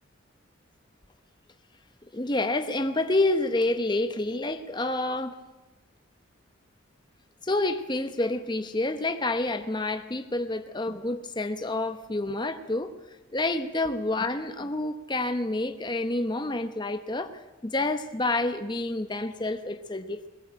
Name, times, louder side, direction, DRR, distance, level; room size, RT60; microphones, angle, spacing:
voice 1, 2.1-5.4 7.4-12.9 13.3-20.2, left 2 dB, 20° left, 8 dB, 0.9 m, -28 dB
21.5 x 20.0 x 8.8 m, 1.0 s
head